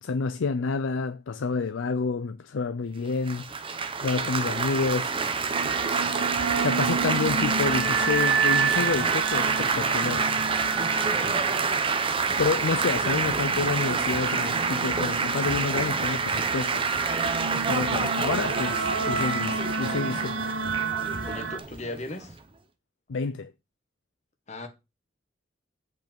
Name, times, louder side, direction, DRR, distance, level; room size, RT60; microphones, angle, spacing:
voice 1, 0.0-3.5 4.0-5.2 6.6-10.3 12.4-16.8 17.7-20.4 23.1-23.5, left 4 dB, 85° left, 0.5 m, -29 dB
Laughter / Applause / Chatter, 3.3-22.4, right 5 dB, 30° right, 0.8 m, -27 dB
sound 1, 5.5-21.6, right 5 dB, 75° right, 0.9 m, -31 dB
voice 2, 11.1-11.5 21.3-22.4 24.5-24.7, left 2 dB, 35° left, 1.5 m, -37 dB
sound 2, 13.8-18.2, right 4 dB, 55° right, 2.1 m, -43 dB
8.1 x 5.3 x 5.2 m
head